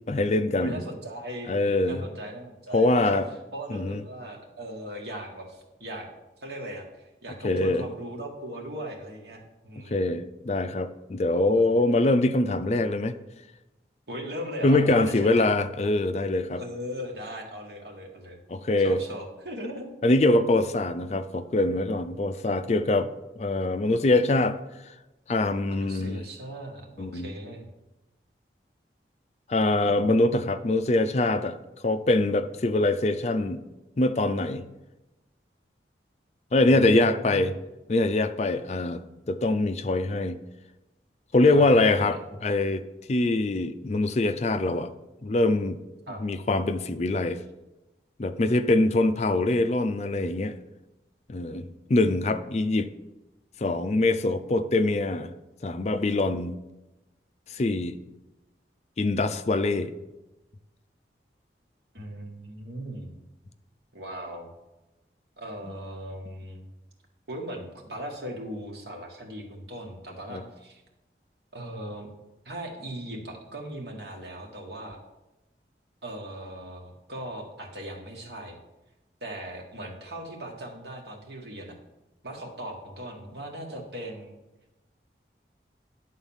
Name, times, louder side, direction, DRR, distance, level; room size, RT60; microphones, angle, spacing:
voice 1, 0.1-0.8 1.5-2.0 2.7-3.3 3.7-4.0 7.4-7.8 9.8-13.2 14.6-16.6 18.5-19.0 20.0-23.1 23.4-24.6 24.8-24.9 25.3-26.2 27.0-27.3 29.5-31.6 31.8-33.6 34.0-34.7 36.5-37.5 37.9-40.4 41.3-44.9 45.2-45.8 46.2-47.4 48.2-50.6 51.3-52.9 53.6-55.3 55.6-56.6 57.5-58.0 59.0-59.9 70.3-70.4, left 2 dB, 40° left, 11 dB, 0.4 m, -24 dB
voice 2, 0.6-1.6 1.9-3.2 3.5-6.1 6.4-6.8 7.2-10.1 11.5-11.6 14.1-15.5 16.5-18.4 18.8-19.9 25.7-27.7 29.7-30.1 37.2-37.5 41.4-42.2 46.1-46.2 61.9-63.1 63.9-64.5 65.4-66.7 67.3-70.8 71.5-72.1 72.5-75.0 76.0-78.6 79.2-81.8 82.2-84.4, right 1 dB, 70° right, 0 dB, 1.8 m, -38 dB
11.0 x 4.0 x 7.1 m, 1.0 s
head